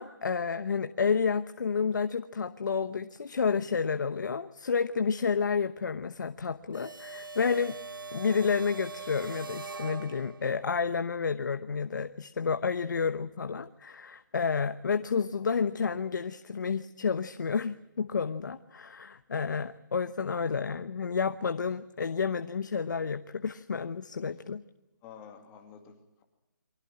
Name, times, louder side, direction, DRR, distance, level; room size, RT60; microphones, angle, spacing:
voice 1, 0.0-7.8 8.1-24.6, left 5 dB, 65° left, 10 dB, 1.0 m, -30 dB
sound 1, 6.7-10.6, right 4 dB, 90° right, 1.1 m, -42 dB
voice 2, 25.0-26.2, left 7 dB, 15° left, 4 dB, 2.4 m, -51 dB
24.0 x 17.5 x 8.7 m, 0.99 s
hypercardioid pair, 165°, 11 cm